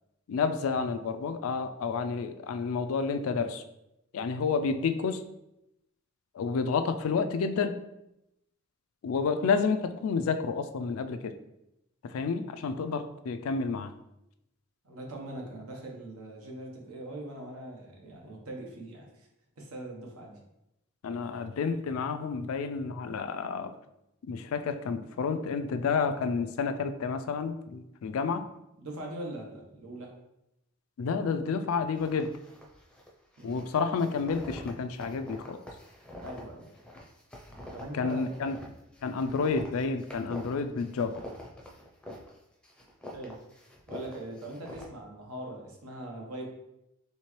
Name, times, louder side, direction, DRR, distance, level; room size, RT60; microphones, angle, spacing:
voice 1, 0.3-3.6 4.1-5.2 6.3-7.8 9.0-11.4 12.0-14.0 21.0-23.8 24.3-28.5 31.0-32.4 33.4-35.6 37.9-38.6 39.0-41.2, left 5 dB, 70° left, 10 dB, 0.3 m, -30 dB
voice 2, 14.8-19.3 19.6-20.4 28.8-30.1 33.4-33.6 36.2-36.6 37.7-38.5 43.1-43.4 43.9-46.4, right 1 dB, 85° right, 0 dB, 1.1 m, -41 dB
sound 1, 31.9-33.1 33.3-42.4 42.6-44.9, left 1 dB, 5° left, 0.5 m, -46 dB
4.3 x 3.2 x 3.1 m, 0.87 s
head